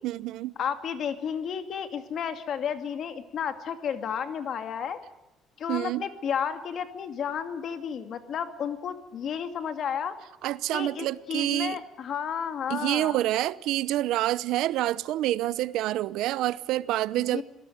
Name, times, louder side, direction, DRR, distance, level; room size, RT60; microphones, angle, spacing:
voice 1, 0.0-0.6 5.7-6.1 10.4-11.8 12.7-17.4, right 14 dB, 75° right, 0.8 m, -27 dB
voice 2, 0.6-5.0 5.6-10.2 10.7-13.2 17.3-17.4, left 7 dB, 45° left, 2.2 m, -32 dB
26.5 x 17.5 x 9.3 m
cardioid pair, 160°, 0 cm